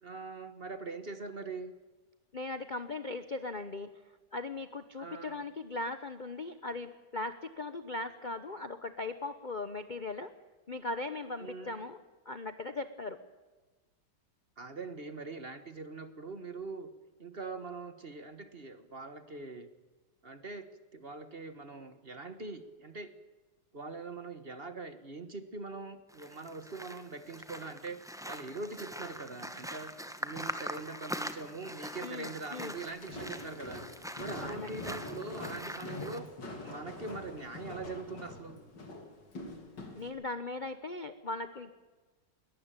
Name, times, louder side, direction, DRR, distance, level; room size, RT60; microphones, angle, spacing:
voice 1, 0.0-1.7 5.0-5.4 11.4-11.8 14.6-16.9 17.2-19.7 20.2-20.6 20.9-23.1 23.7-29.9 30.2-33.8 34.2-36.3 36.6-38.6, right 3 dB, 35° right, 10 dB, 1.4 m, -42 dB
voice 2, 2.3-3.9 4.3-10.3 10.7-12.0 12.2-13.2 32.0-32.8 34.4-34.9 39.9-41.7, left 2 dB, 35° left, 10 dB, 0.8 m, -39 dB
sound 1, 26.1-36.2, equal, ahead, 1.1 m, -43 dB
Walk footsteps, 32.9-40.1, left 2 dB, 70° left, 3.7 m, -44 dB
21.5 x 18.5 x 8.9 m, 1.3 s
omnidirectional pair, 2.0 m